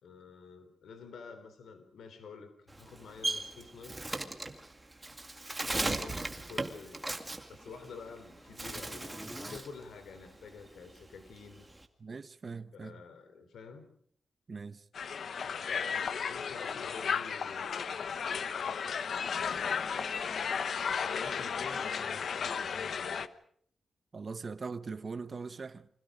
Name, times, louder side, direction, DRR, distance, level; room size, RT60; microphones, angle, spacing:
voice 1, 0.0-4.1 5.6-6.2 6.5-7.2 7.5-11.7 12.7-13.9 16.2-18.2 19.3-19.8 20.8-23.3, left 5 dB, 85° left, 3.7 m, -49 dB
Bird, 2.7-8.2 8.5-9.8 10.1-11.8, right 2 dB, 15° right, 2.1 m, -37 dB
voice 2, 5.7-6.1 12.0-13.0 14.5-14.9 24.1-25.9, right 4 dB, 35° right, 0.9 m, -41 dB
sound 1, 7.6-9.6, equal, 5° left, 2.4 m, -49 dB
Crowd, 14.9-23.3, left 6 dB, 55° left, 1.1 m, -34 dB
30.0 x 25.0 x 5.1 m
wide cardioid pair, 165°, 0 cm